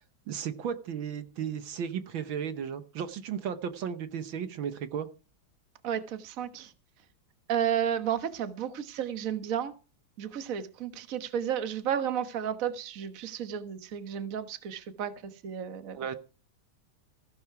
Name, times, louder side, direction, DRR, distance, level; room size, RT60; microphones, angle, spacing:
voice 1, 0.3-5.1 16.0-16.2, right 8 dB, 70° right, 1.8 m, -34 dB
voice 2, 5.8-6.7 7.5-9.7 10.2-16.1, right 9 dB, 45° right, 1.6 m, -32 dB
15.5 x 11.5 x 4.7 m
omnidirectional pair, 2.3 m